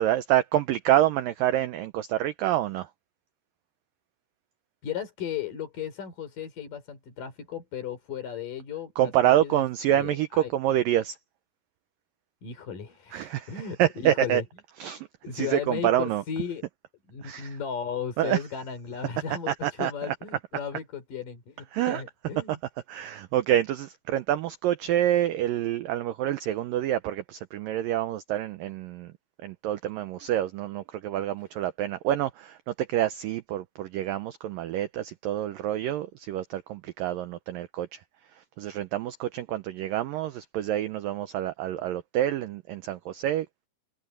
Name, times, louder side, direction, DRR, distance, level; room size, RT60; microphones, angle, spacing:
voice 1, 0.0-2.9 9.0-11.2 13.1-14.4 14.8-15.1 15.3-16.2 17.2-17.6 18.2-18.4 19.5-20.2 21.7-22.0 22.5-22.6 22.9-29.1 29.4-38.0 38.6-43.5, right 12 dB, 85° right, 2.0 m, -27 dB
voice 2, 4.8-9.6 9.9-10.5 12.4-14.4 15.2-16.6 17.1-22.6, left 7 dB, 50° left, 5.3 m, -35 dB
omnidirectional pair, 5.0 m